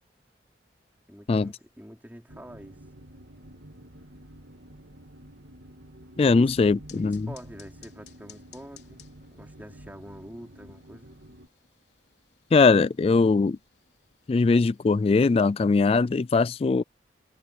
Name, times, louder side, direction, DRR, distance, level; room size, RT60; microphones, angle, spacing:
voice 1, 1.1-2.8 6.3-6.5 6.9-9.1 9.3-11.2, equal, 10° right, 4.7 m, -45 dB
sound 1, 2.3-11.5, right 1 dB, 70° right, 2.2 m, -49 dB
voice 2, 6.2-7.3 12.5-13.6 14.3-16.8, left 4 dB, 35° left, 0.3 m, -21 dB
sound 2, 6.9-15.5, left 9 dB, 65° left, 4.4 m, -58 dB
head